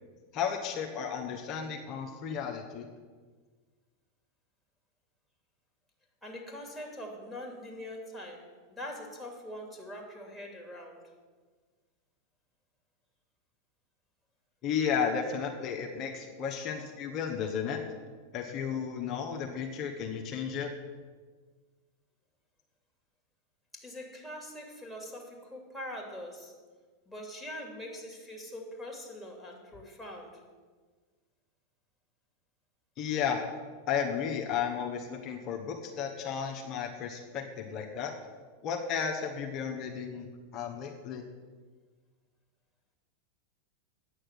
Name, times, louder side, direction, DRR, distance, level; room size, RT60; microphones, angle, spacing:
voice 1, 0.3-2.9 14.6-17.8 18.3-20.7 33.0-33.4 33.9-38.1 38.6-41.2, left 7 dB, 45° left, 2 dB, 1.2 m, -33 dB
voice 2, 6.2-8.4 8.7-11.0 23.7-26.5 27.1-30.4, left 1 dB, 5° left, 0 dB, 2.5 m, -43 dB
9.1 x 6.5 x 8.1 m, 1.5 s
hypercardioid pair, 95°, 0 cm